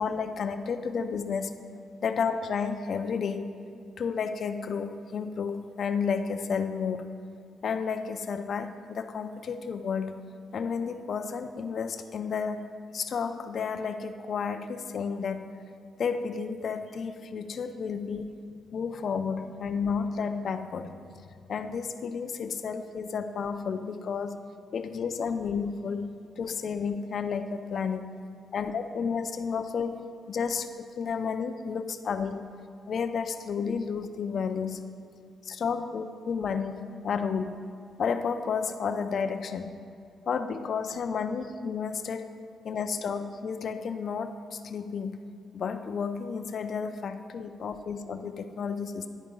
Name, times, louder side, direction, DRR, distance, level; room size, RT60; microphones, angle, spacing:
voice 1, 0.0-1.5 2.0-3.5 4.0-7.1 7.6-10.2 10.5-12.7 12.9-15.5 16.0-18.3 18.7-20.9 21.5-24.4 24.7-26.1 26.4-28.1 28.5-32.5 32.9-34.8 35.4-37.7 38.0-39.7 40.3-42.3 42.6-45.2 45.5-49.1, left 6 dB, 50° left, 7 dB, 0.4 m, -31 dB
10.0 x 4.6 x 5.2 m, 2.3 s
cardioid pair, 130°, 0 cm